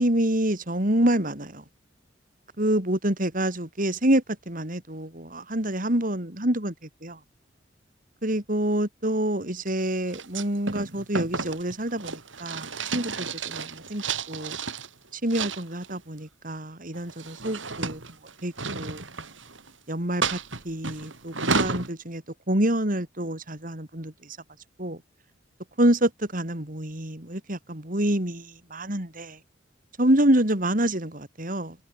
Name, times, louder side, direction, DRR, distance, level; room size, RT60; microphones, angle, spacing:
voice 1, 0.0-1.6 2.6-6.7 7.0-7.2 8.2-14.6 15.1-18.0 18.4-19.0 19.9-20.4 20.6-22.2 22.5-24.1 24.8-25.0 25.8-29.4 30.0-31.8, right 1 dB, 45° right, 4.0 m, -27 dB
sound 1, 10.1-14.9 15.3-16.0 16.9-19.7 20.2-21.9, right 4 dB, 85° right, 6.6 m, -32 dB
head